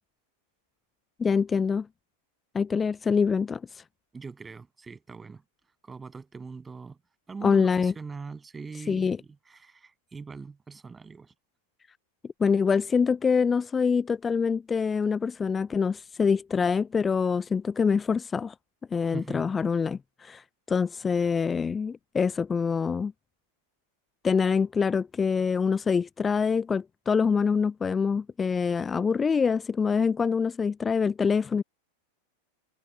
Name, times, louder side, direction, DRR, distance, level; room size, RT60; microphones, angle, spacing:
voice 1, 1.2-1.9 2.5-3.8 7.4-7.9 8.8-9.2 12.4-18.5 18.9-23.1 24.2-31.6, left 5 dB, 15° left, 0.4 m, -25 dB
voice 2, 4.1-5.4 5.8-7.0 7.3-11.3 19.0-19.5, right 4 dB, 15° right, 7.7 m, -41 dB
figure-of-eight pair, 90°, 0 cm